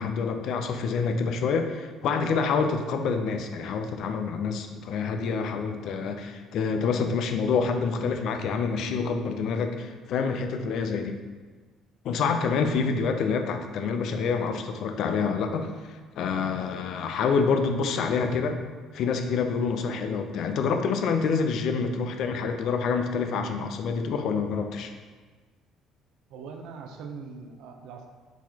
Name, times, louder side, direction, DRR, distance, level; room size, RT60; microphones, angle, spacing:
voice 1, 0.0-11.2 12.0-18.6 18.9-24.9, left 5 dB, 60° left, 6 dB, 0.4 m, -27 dB
voice 2, 26.3-28.1, right 5 dB, 75° right, 4 dB, 0.6 m, -41 dB
4.6 x 4.0 x 2.8 m, 1.4 s
cardioid pair, 130°, 0 cm